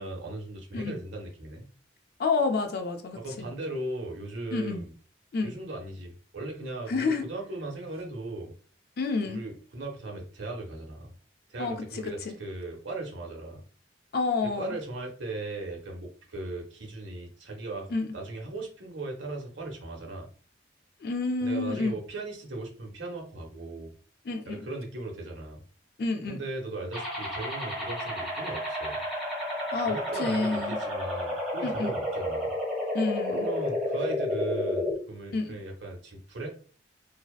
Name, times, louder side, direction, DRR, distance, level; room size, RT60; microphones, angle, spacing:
voice 1, 0.0-1.7 3.1-4.9 5.4-8.5 9.2-11.1 11.5-13.6 14.6-20.3 21.4-23.9 24.5-25.6 26.3-29.0 29.8-32.5 33.3-36.5, right 2 dB, 80° right, 0.8 m, -38 dB
voice 2, 2.2-3.5 4.5-4.8 5.3-5.5 6.9-7.3 9.0-9.4 11.6-12.3 14.1-14.8 17.9-18.1 21.0-22.0 24.3-24.7 26.0-26.4 29.7-30.8 31.6-31.9 32.9-33.5 35.3-35.6, left 3 dB, 55° left, 0.4 m, -29 dB
sound 1, 26.9-34.9, left 1 dB, 5° right, 0.9 m, -31 dB
2.7 x 2.0 x 2.3 m
head